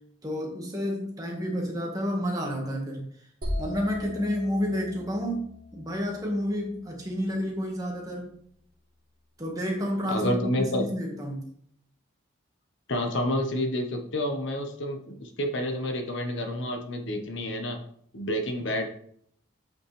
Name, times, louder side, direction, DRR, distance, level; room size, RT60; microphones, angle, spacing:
voice 1, 0.2-3.1 3.6-8.4 9.4-11.5, equal, 20° right, -1 dB, 1.7 m, -30 dB
sound 1, 3.4-7.2, left 1 dB, 45° right, 1.7 m, -38 dB
voice 2, 10.1-10.8 12.9-17.8 18.1-18.9, left 1 dB, 65° left, 4 dB, 1.3 m, -29 dB
8.4 x 5.5 x 3.4 m, 0.66 s
head